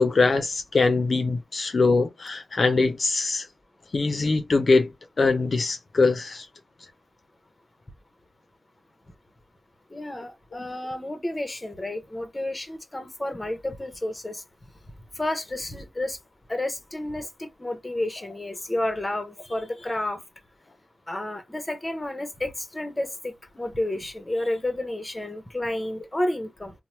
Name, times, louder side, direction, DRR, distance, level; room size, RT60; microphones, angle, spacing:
voice 1, 0.0-3.5 3.9-4.9 5.2-6.5, left 3 dB, 60° left, 0.4 m, -22 dB
voice 2, 9.9-14.4 15.2-16.2 16.5-20.2 21.1-26.7, left 1 dB, 20° left, 0.7 m, -31 dB
2.9 x 2.0 x 2.9 m
cardioid pair, 70°, 0 cm